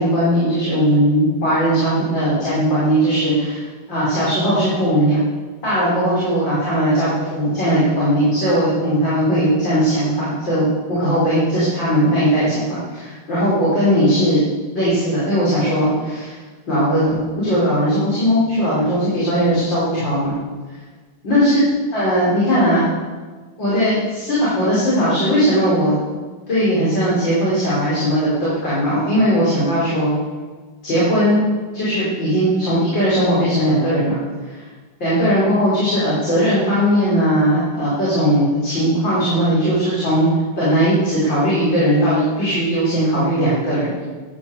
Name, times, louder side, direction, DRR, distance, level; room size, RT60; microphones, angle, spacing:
voice 1, 0.0-3.6 3.9-5.2 5.6-14.4 14.7-16.4 16.7-20.3 21.2-21.6 21.9-22.9 23.6-25.9 26.5-30.1 30.8-31.4 31.7-34.6 35.0-40.3 40.6-44.0, equal, 75° left, -9 dB, 6.2 m, -18 dB
15.5 x 12.0 x 7.3 m, 1.4 s
omnidirectional pair, 2.1 m